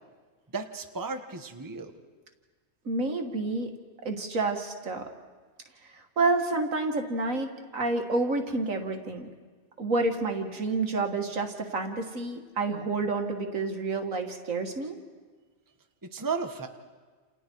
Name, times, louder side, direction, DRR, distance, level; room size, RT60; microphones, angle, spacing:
voice 1, 0.5-1.9 16.1-16.7, right 4 dB, 15° right, 6 dB, 1.3 m, -34 dB
voice 2, 2.9-3.7 4.0-5.0 5.9-9.3 9.8-15.0, right 3 dB, 70° right, 4 dB, 2.3 m, -29 dB
29.5 x 29.0 x 4.7 m, 1.5 s
omnidirectional pair, 1.5 m